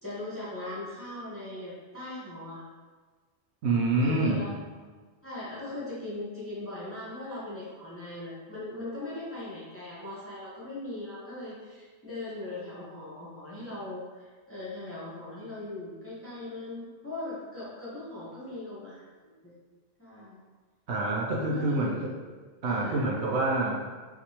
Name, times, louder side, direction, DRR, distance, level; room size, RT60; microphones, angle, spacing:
voice 1, 0.0-2.6 3.9-4.5 5.2-19.5 20.0-20.4 21.5-22.1 22.7-23.0, left 2 dB, 15° left, -9 dB, 0.8 m, -40 dB
voice 2, 3.6-4.5 20.9-22.1 22.6-23.8, right 2 dB, 70° right, -3 dB, 0.9 m, -26 dB
4.7 x 2.5 x 2.8 m, 1.4 s
omnidirectional pair, 1.2 m